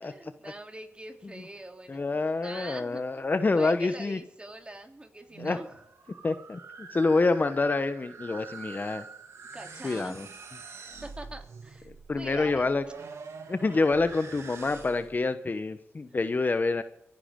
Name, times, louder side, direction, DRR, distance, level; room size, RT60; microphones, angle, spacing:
voice 1, 0.0-3.3 3.5-5.8 9.5-10.3 11.0-12.7, right 1 dB, 20° right, 3 dB, 3.1 m, -44 dB
voice 2, 1.9-4.2 5.4-5.6 6.2-9.0 9.8-10.3 12.1-12.8 13.5-16.8, left 3 dB, 40° left, 10 dB, 1.0 m, -27 dB
sound 1, 5.2-15.2, right 4 dB, 75° right, 2.5 m, -45 dB
24.5 x 10.5 x 3.8 m, 0.76 s
cardioid pair, 65°, 5 cm